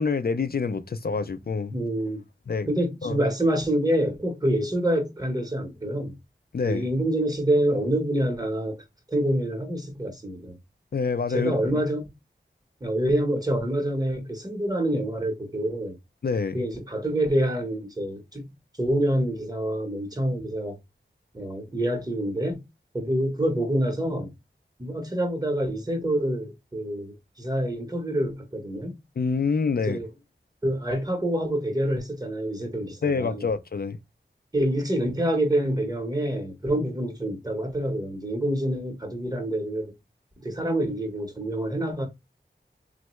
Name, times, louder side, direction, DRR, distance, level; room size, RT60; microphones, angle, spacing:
voice 1, 0.0-1.7 2.5-2.7 3.0-3.2 6.5-6.9 10.9-11.8 16.2-16.6 29.2-30.0 33.0-34.0, left 4 dB, 50° left, 0.4 m, -26 dB
voice 2, 1.7-2.2 2.7-6.1 6.6-8.8 9.1-10.6 11.3-12.1 12.8-16.0 16.5-20.8 21.3-22.6 22.9-24.3 24.8-29.0 29.8-30.1 30.6-33.4 34.5-39.9 40.4-42.1, right 1 dB, 20° right, 0.9 m, -26 dB
3.2 x 2.1 x 3.0 m
wide cardioid pair, 55°, 20 cm